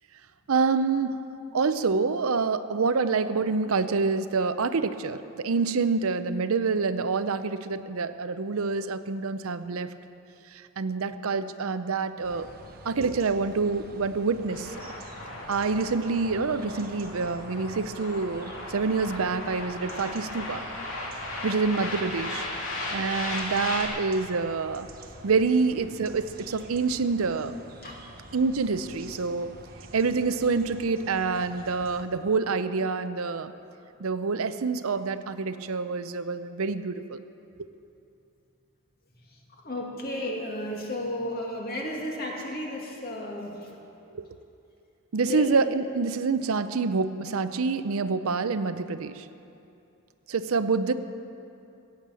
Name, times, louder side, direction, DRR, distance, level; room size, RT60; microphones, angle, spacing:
voice 1, 0.5-9.9 10.5-12.5 12.8-14.8 15.5-20.6 21.4-22.5 22.9-24.9 25.2-27.5 28.3-29.5 29.9-33.5 34.0-37.2 44.1-44.3 45.1-49.3 50.3-50.9, right 4 dB, 75° right, 11 dB, 0.6 m, -27 dB
sound 1, 12.2-32.0, right 2 dB, 45° right, 1.0 m, -47 dB
sound 2, 14.5-23.9, left 2 dB, 70° left, 2.5 m, -36 dB
voice 2, 39.6-43.7 45.3-45.5, left 1 dB, 45° left, -1 dB, 2.3 m, -33 dB
16.5 x 8.6 x 7.6 m, 2.7 s
head